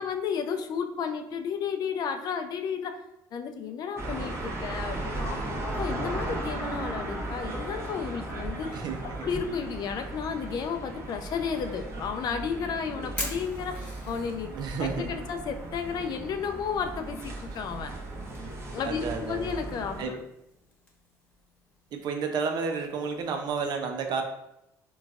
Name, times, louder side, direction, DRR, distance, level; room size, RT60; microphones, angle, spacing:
voice 1, 0.0-3.0 3.3-8.8 9.2-14.5 14.8-17.9 18.7-20.2, left 6 dB, 55° left, 7 dB, 0.4 m, -33 dB
sound 1, 4.0-20.1, right 2 dB, 35° right, 0.9 m, -36 dB
voice 2, 8.7-9.3 14.5-15.3 18.8-19.6 20.0-20.1 21.9-24.2, right 5 dB, 60° right, 5 dB, 0.5 m, -31 dB
Fire, 12.1-23.6, left 1 dB, 15° left, 1.2 m, -46 dB
3.9 x 2.3 x 2.3 m, 0.85 s
supercardioid pair, 70°, 8 cm